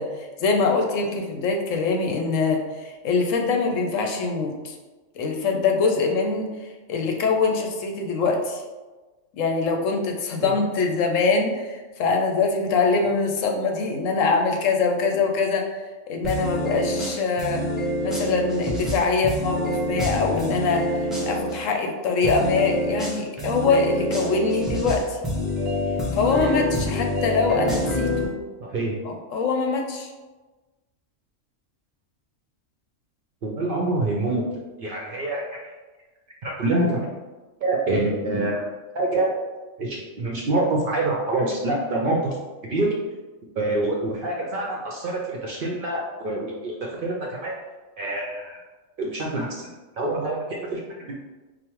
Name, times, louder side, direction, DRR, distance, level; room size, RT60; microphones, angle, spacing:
voice 1, 0.0-4.7 5.2-6.5 6.9-8.6 9.3-15.8 16.1-17.7 18.0-25.2 26.1-28.4 29.0-30.1, left 4 dB, 80° left, 2 dB, 1.0 m, -23 dB
sound 1, 16.2-21.6 22.2-28.2, left 1 dB, ahead, 0.4 m, -26 dB
voice 2, 28.6-29.0 33.4-34.4 34.8-35.7 36.4-37.1 37.6-38.6 38.9-39.3 39.8-42.4 42.7-42.9 43.6-47.5 48.0-48.6 49.0-49.5 50.0-50.4 50.7-50.8, right 2 dB, 60° right, -2 dB, 0.6 m, -25 dB
5.1 x 2.0 x 3.0 m, 1.2 s
omnidirectional pair, 1.3 m